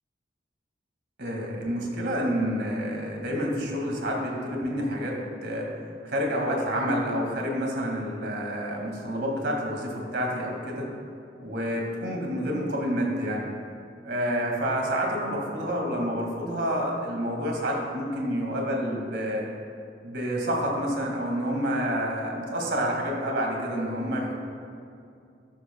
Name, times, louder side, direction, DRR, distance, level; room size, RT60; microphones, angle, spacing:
voice 1, 1.2-5.7 6.0-10.9 11.4-13.5 14.0-19.5 20.0-24.4, equal, 65° right, -1 dB, 2.1 m, -28 dB
13.5 x 11.5 x 2.3 m, 2.5 s
head